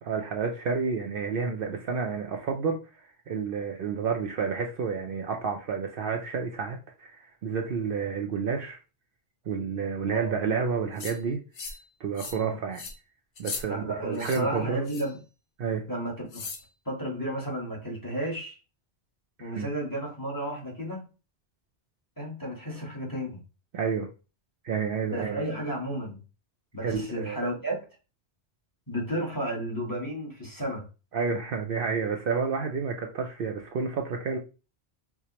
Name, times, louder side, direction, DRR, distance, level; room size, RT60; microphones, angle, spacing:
voice 1, 0.0-2.8 3.3-7.2 7.4-8.8 9.5-11.4 12.0-12.9 13.4-14.9 15.6-15.9 19.4-19.7 23.7-24.1 24.6-25.4 26.8-27.4 31.1-34.4, right 5 dB, 65° right, 0.7 m, -30 dB
sound 1, 11.0-11.2 11.5-11.9 12.2-12.4 12.7-12.9 13.4-13.6 14.1-14.4 14.9-15.2 16.3-16.6, left 4 dB, 55° left, 0.7 m, -38 dB
voice 2, 13.7-15.2 15.9-16.5 16.8-18.6 19.4-21.1 22.2-23.4 25.0-26.2 26.7-27.8 28.9-30.9, right 1 dB, 20° left, 1.0 m, -33 dB
4.6 x 2.1 x 2.8 m
omnidirectional pair, 1.1 m